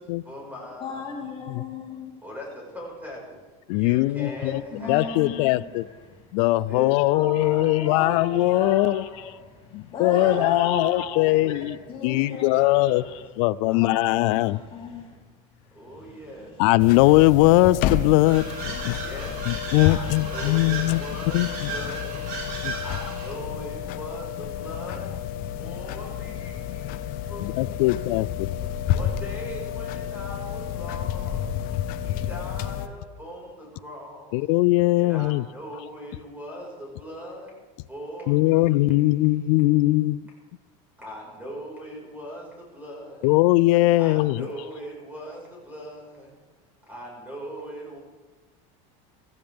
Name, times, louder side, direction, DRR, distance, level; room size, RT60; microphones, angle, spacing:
voice 1, 0.2-1.5 2.2-3.4 3.7-5.6 6.6-9.4 10.1-11.6 12.1-14.7 15.7-16.5 19.0-19.4 19.8-25.2 25.6-28.0 28.9-31.5 32.0-34.4 34.9-37.6 37.9-40.0 41.0-43.3 44.0-46.4 46.9-48.0, equal, 10° right, 5.3 m, -41 dB
voice 2, 0.8-2.1 4.2-6.3 6.8-11.6 11.9-13.0 13.7-15.3 16.0-16.9, left 4 dB, 30° left, 3.3 m, -35 dB
voice 3, 3.7-4.6 4.9-5.8 6.3-9.0 9.7-11.8 12.0-13.0 13.4-14.6 16.6-18.9 19.5-21.0 21.3-21.7 22.6-22.7 27.4-28.5 34.3-35.4 38.3-40.2 43.2-44.5, left 19 dB, 70° left, 0.4 m, -20 dB
sound 1, 16.8-32.9, left 10 dB, 55° left, 0.8 m, -30 dB
sound 2, 18.2-23.4, right 4 dB, 60° right, 4.8 m, -35 dB
16.5 x 14.5 x 3.6 m
supercardioid pair, 135°, 17 cm